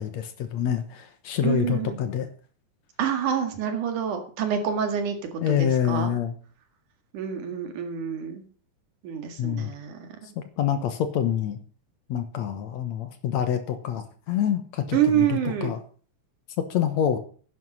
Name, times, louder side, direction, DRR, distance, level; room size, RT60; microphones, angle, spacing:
voice 1, 0.0-2.3 5.4-6.4 9.4-9.7 10.4-11.6 12.1-15.8 16.7-17.2, left 9 dB, 70° left, 9 dB, 2.3 m, -26 dB
voice 2, 1.4-2.0 3.0-5.2 5.5-6.1 7.1-8.4 9.0-10.1 14.9-15.7, right 8 dB, 80° right, 6 dB, 3.6 m, -27 dB
11.0 x 9.5 x 5.5 m, 0.43 s
omnidirectional pair, 3.5 m